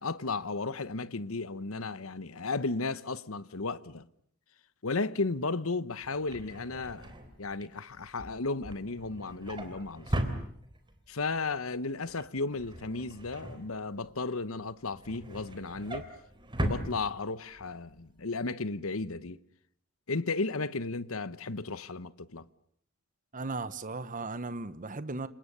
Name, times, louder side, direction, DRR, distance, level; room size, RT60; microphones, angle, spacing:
voice 1, 0.0-4.1 4.8-10.3 11.1-16.1 16.6-19.4 20.1-22.5, left 3 dB, 70° left, 1.1 m, -34 dB
Drawer open or close, 6.0-11.1 11.4-11.8 12.0-14.2 14.7-17.6 18.0-18.2 18.5-18.6, equal, 20° right, 3.6 m, -38 dB
voice 2, 23.3-25.3, right 3 dB, 40° right, 1.1 m, -36 dB
29.5 x 26.5 x 6.9 m
head